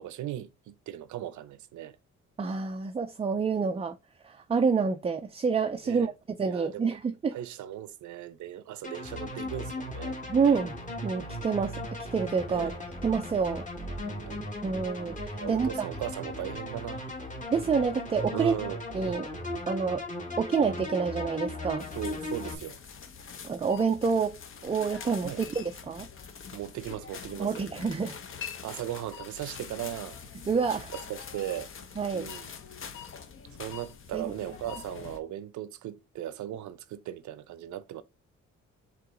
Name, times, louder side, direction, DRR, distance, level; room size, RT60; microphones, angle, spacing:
voice 1, 0.0-2.0 5.9-6.1 6.5-7.0 7.3-10.2 10.4-10.6 12.5-12.8 14.0-14.5 15.3-17.1 18.3-18.8 21.9-22.8 25.2-25.4 26.5-27.7 28.6-30.2 30.9-31.7 32.1-32.5 33.6-38.0, right 12 dB, 75° right, 0.7 m, -38 dB
voice 2, 2.4-4.0 4.2-6.1 6.4-7.4 10.3-10.8 11.0-12.7 13.0-13.7 14.6-15.9 17.5-18.5 18.9-19.3 19.7-20.0 20.4-21.9 23.4-24.4 24.6-26.1 27.4-28.2 30.5-30.9 32.0-32.3 34.1-34.3, right 5 dB, 20° right, 0.4 m, -28 dB
sound 1, 8.8-22.5, left 1 dB, 25° left, 1.4 m, -37 dB
sound 2, 21.8-35.2, left 6 dB, 45° left, 0.8 m, -44 dB
4.6 x 3.0 x 3.8 m
cardioid pair, 90°, 30 cm